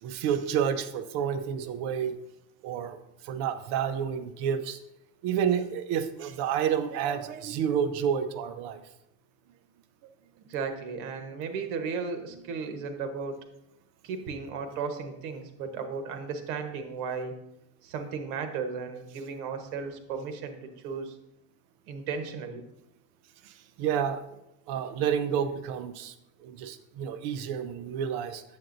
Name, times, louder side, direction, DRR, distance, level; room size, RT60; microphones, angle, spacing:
voice 1, 0.0-2.2 2.6-4.8 5.2-8.8 23.4-24.2 24.7-26.1 26.4-28.4, right 8 dB, 65° right, 10 dB, 0.7 m, -30 dB
voice 2, 10.5-13.4 14.0-17.4 17.8-21.2 21.9-22.6, right 5 dB, 90° right, 7 dB, 1.1 m, -35 dB
7.8 x 7.6 x 2.6 m, 0.86 s
cardioid pair, 145°, 41 cm